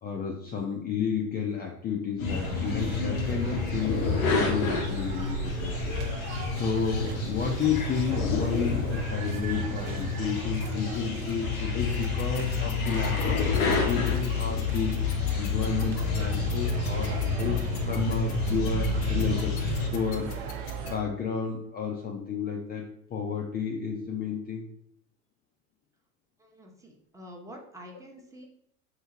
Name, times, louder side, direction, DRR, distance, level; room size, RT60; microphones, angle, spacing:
voice 1, 0.0-6.0 6.5-15.0 15.3-19.6 19.9-20.4 20.8-24.7, left 6 dB, 25° left, 0 dB, 0.4 m, -31 dB
sound 1, 2.2-19.9, left 4 dB, 90° left, 0.9 m, -29 dB
sound 2, 2.3-21.0, right 5 dB, 55° right, 0.8 m, -38 dB
sound 3, 12.0-20.9, left 8 dB, 60° left, 0.8 m, -43 dB
voice 2, 26.4-28.5, equal, 10° right, 0 dB, 0.7 m, -47 dB
3.0 x 2.7 x 3.7 m, 0.70 s
hypercardioid pair, 85°, 41 cm